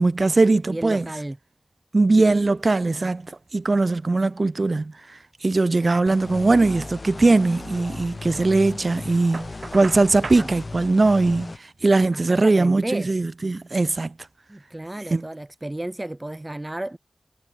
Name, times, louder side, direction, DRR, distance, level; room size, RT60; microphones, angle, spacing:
voice 1, 0.0-1.1 1.9-14.1 15.1-15.2, right 3 dB, 60° right, 0.8 m, -20 dB
voice 2, 0.7-1.4 10.3-10.5 12.1-13.2 14.5-17.0, right 1 dB, 25° right, 1.3 m, -33 dB
sound 1, 6.1-11.6, left 3 dB, 65° left, 2.4 m, -37 dB
Knock, 9.3-10.5, right 3 dB, 75° right, 1.5 m, -36 dB
wide cardioid pair, 50°, 0 cm